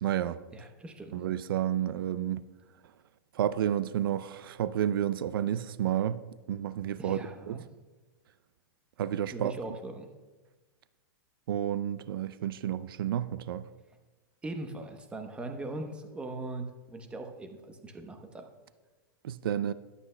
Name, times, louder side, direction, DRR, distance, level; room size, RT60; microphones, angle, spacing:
voice 1, 0.0-0.4 1.1-2.4 3.4-6.2 6.5-7.6 9.0-9.5 11.5-13.6 19.2-19.7, right 10 dB, 80° right, 0.4 m, -30 dB
voice 2, 0.5-1.1 7.0-7.6 9.3-10.1 14.4-18.4, right 2 dB, 10° right, 0.9 m, -40 dB
21.0 x 8.3 x 2.2 m
supercardioid pair, 150°, 12 cm